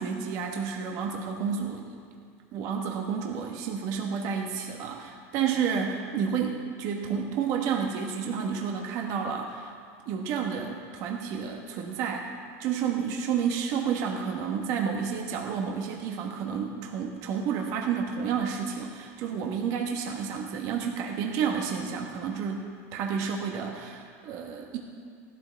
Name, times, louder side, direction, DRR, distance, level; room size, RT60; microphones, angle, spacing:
voice 1, 0.0-1.9 2.5-9.7 10.1-12.3 12.6-24.8, right 7 dB, 45° right, 1 dB, 1.4 m, -30 dB
17.0 x 12.5 x 3.5 m, 2.2 s
supercardioid pair, 165°, 8 cm